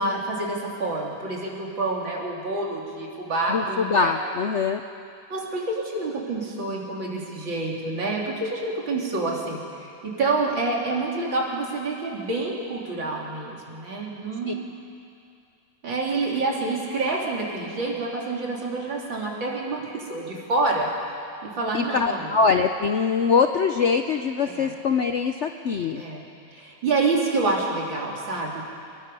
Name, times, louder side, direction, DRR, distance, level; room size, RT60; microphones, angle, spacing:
voice 1, 0.0-4.1 5.3-14.7 15.8-20.9 21.4-22.4 24.6-24.7 26.0-26.2 26.5-28.6, right 3 dB, 85° right, -3 dB, 3.9 m, -27 dB
voice 2, 3.5-4.8 14.5-14.6 21.7-26.0, left 5 dB, 65° left, 6 dB, 0.7 m, -23 dB
25.0 x 21.0 x 5.5 m, 2.4 s
omnidirectional pair, 2.0 m